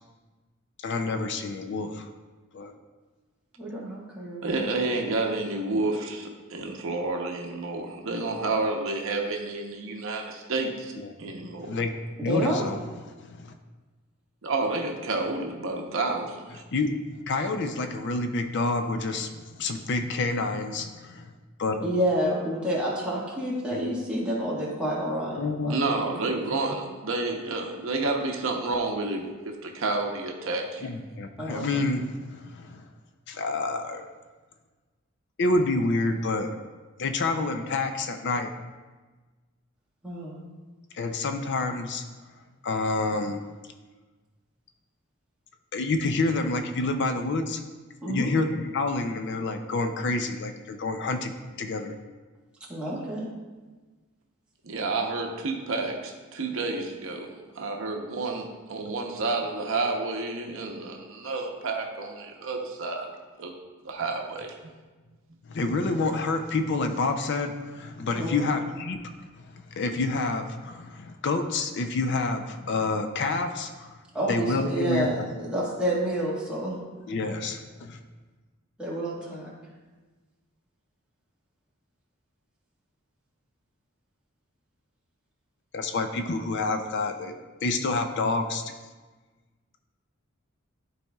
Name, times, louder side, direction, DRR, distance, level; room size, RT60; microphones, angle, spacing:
voice 1, 0.8-2.1 2.5-2.7 11.0-11.1 11.6-11.9 12.2-12.8 13.2-13.5 16.7-16.9 17.3-21.3 21.6-21.9 23.7-23.9 25.4-25.8 30.8-32.8 33.3-34.1 35.4-36.5 37.0-38.5 40.9-42.0 42.6-43.4 45.7-47.6 48.1-52.0 65.5-69.0 69.4-74.0 74.3-75.3 77.1-78.0 85.7-87.3 87.6-88.6, left 3 dB, 55° left, 7 dB, 0.5 m, -28 dB
voice 2, 3.6-4.5 4.8-5.0 12.2-12.6 21.8-26.1 31.4-31.9 40.0-40.4 48.0-48.3 52.7-53.3 68.2-68.5 74.1-76.8 78.8-79.5, right 1 dB, 5° right, -7 dB, 1.6 m, -29 dB
voice 3, 4.4-10.9 11.2-11.8 14.4-16.6 25.7-30.9 54.6-57.3 57.5-63.1 63.4-63.5 63.8-64.5, right 3 dB, 70° right, 2 dB, 0.8 m, -30 dB
12.0 x 4.2 x 2.3 m, 1.3 s
head